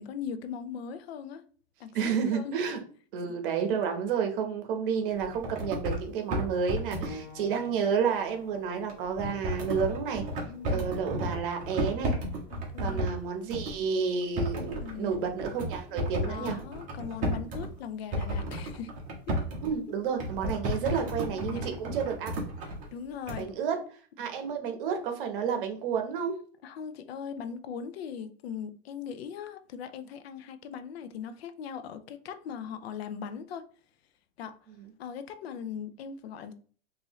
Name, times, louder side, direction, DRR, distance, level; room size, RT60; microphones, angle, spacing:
voice 1, 0.0-1.4 1.8-2.6 10.4-11.0 12.5-13.0 14.8-15.6 15.9-18.9 21.3-21.7 22.9-23.5 26.6-33.7 34.4-34.6 35.0-36.5, left 7 dB, 75° left, 0.6 m, -40 dB
voice 2, 1.9-2.8 3.1-10.2 10.7-12.1 12.8-16.6 19.6-22.4 23.4-23.8 24.2-26.4 34.8-34.9, right 6 dB, 60° right, 0.9 m, -30 dB
sound 1, 5.2-6.0 6.3-7.1 8.9-13.2 13.5-13.8 14.2-17.7 18.1-19.7 20.2-22.9 23.3-23.4, equal, 25° right, 1.0 m, -33 dB
sound 2, 7.0-17.3 18.2-18.3 19.1-19.2, left 3 dB, 30° left, 1.1 m, -53 dB
3.7 x 2.7 x 3.0 m
supercardioid pair, 155°, 31 cm